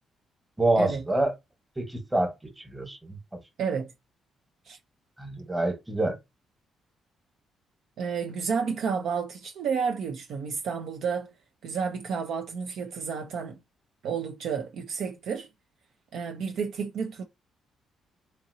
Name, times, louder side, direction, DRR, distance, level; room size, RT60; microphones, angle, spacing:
voice 1, 0.6-1.3 1.8-3.2 5.2-6.1, right 2 dB, 15° right, 1.1 m, -27 dB
voice 2, 3.6-3.9 4.7-4.8 8.0-11.3 11.6-13.6 14.0-15.5 16.1-17.2, right 6 dB, 65° right, 0.4 m, -31 dB
2.9 x 2.6 x 2.7 m
hypercardioid pair, 50°, 0 cm